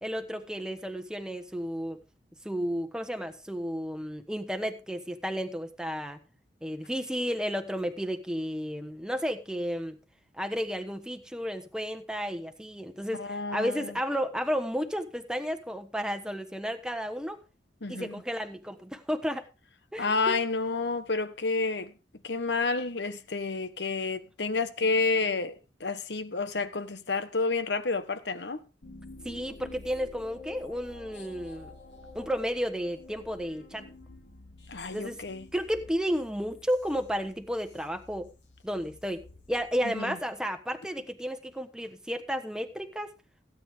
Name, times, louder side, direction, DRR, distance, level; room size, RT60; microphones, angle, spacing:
voice 1, 0.0-2.0 2.4-6.2 6.6-10.0 10.4-17.4 17.9-19.5 19.9-20.3 29.2-31.7 32.1-33.9 34.9-35.2 35.5-38.3 38.6-43.1, equal, 5° right, 1.2 m, -32 dB
voice 2, 13.2-13.9 17.8-18.2 20.0-21.9 22.2-28.6 34.7-35.5 39.8-40.1, left 4 dB, 70° left, 1.3 m, -30 dB
sound 1, 28.8-40.4, left 3 dB, 85° left, 3.4 m, -49 dB
16.5 x 9.2 x 3.6 m
head